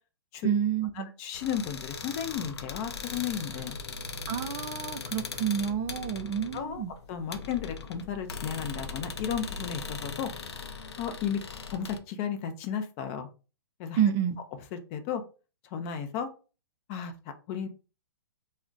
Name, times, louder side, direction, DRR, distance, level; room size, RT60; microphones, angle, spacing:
voice 1, 0.4-1.1 4.3-6.9 14.0-14.4, right 9 dB, 25° right, 0.4 m, -29 dB
voice 2, 0.9-3.8 6.5-6.8 7.1-10.3 11.0-11.4 11.7-13.3 13.8-14.0 14.7-15.2 15.7-16.3 16.9-17.1 17.5-17.7, left 8 dB, 30° left, 0.5 m, -34 dB
sound 1, 1.3-12.0, left 4 dB, 80° left, 0.5 m, -39 dB
2.3 x 2.1 x 3.8 m
hypercardioid pair, 130°, 14 cm